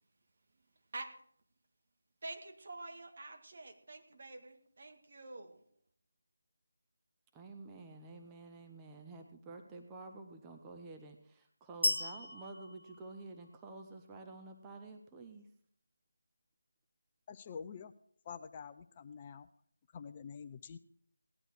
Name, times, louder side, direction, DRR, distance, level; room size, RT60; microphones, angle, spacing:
voice 1, 2.2-5.6, right 2 dB, 45° right, 2.0 m, -47 dB
voice 2, 7.3-15.5, right 3 dB, 10° right, 0.9 m, -50 dB
sound 1, 11.8-13.8, left 1 dB, 80° left, 1.4 m, -36 dB
voice 3, 17.3-17.9 18.3-19.5 19.9-20.8, left 6 dB, 25° left, 0.5 m, -47 dB
17.5 x 11.0 x 4.8 m
figure-of-eight pair, 160°, 0 cm